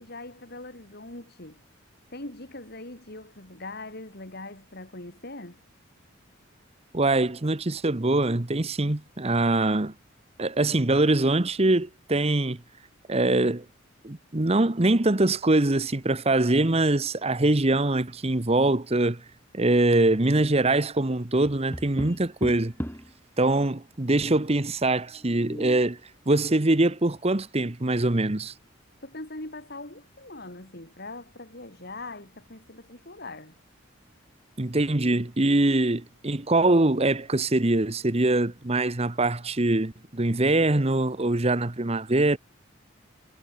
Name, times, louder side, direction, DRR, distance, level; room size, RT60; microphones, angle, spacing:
voice 1, 0.0-1.6 2.1-5.6 29.0-33.6, left 2 dB, 50° left, 4.4 m, -41 dB
voice 2, 6.9-9.9 10.4-12.6 13.1-13.6 14.0-19.2 19.5-22.7 23.4-26.0 26.3-28.5 34.6-42.4, right 2 dB, 30° right, 1.1 m, -23 dB
Tap, 21.4-23.2 25.2-25.9, equal, 10° left, 3.4 m, -36 dB
head